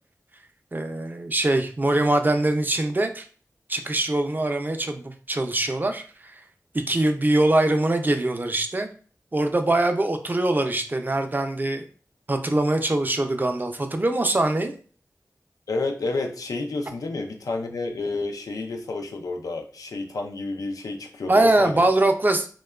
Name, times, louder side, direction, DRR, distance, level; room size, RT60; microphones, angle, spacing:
voice 1, 0.7-3.3 3.7-6.3 6.7-8.9 9.3-11.8 12.3-14.7 21.3-22.5, right 2 dB, 30° right, 6 dB, 0.4 m, -23 dB
voice 2, 15.7-21.9, left 3 dB, 90° left, 3 dB, 0.4 m, -30 dB
2.8 x 2.2 x 2.3 m, 0.41 s
cardioid pair, 45°, 6 cm